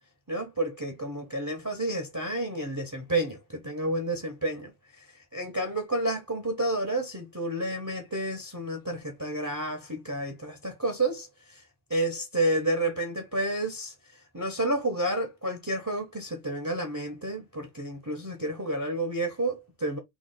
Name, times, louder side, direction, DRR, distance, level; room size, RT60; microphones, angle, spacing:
voice 1, 0.3-4.7 5.0-5.1 5.3-11.6 11.9-13.9 14.3-20.0, right 1 dB, 20° right, 0.6 m, -30 dB
3.5 x 2.3 x 3.7 m
omnidirectional pair, 1.0 m